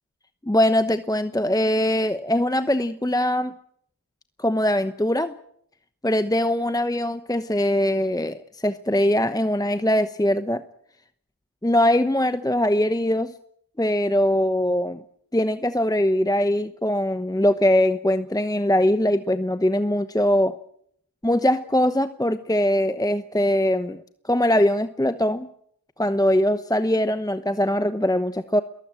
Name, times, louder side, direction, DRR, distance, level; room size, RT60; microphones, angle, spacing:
voice 1, 0.4-3.5 4.4-5.4 6.0-10.6 11.6-13.3 13.8-15.0 15.3-20.5 21.2-25.5 26.0-28.6, left 1 dB, 10° left, 1.0 m, -22 dB
21.5 x 20.0 x 7.6 m
cardioid pair, 45°, 40 cm